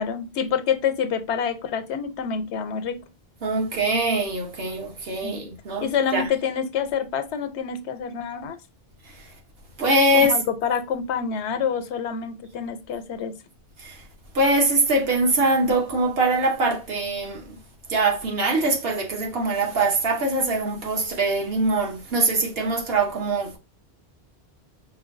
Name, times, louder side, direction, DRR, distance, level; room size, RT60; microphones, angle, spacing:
voice 1, 0.0-3.0 5.2-5.4 5.8-8.6 10.1-13.3, left 7 dB, 85° left, 0.9 m, -27 dB
voice 2, 3.4-6.3 9.8-10.3 13.8-14.0 14.3-17.4 17.9-23.6, right 2 dB, 65° right, 1.2 m, -23 dB
5.5 x 2.2 x 2.5 m
omnidirectional pair, 1.1 m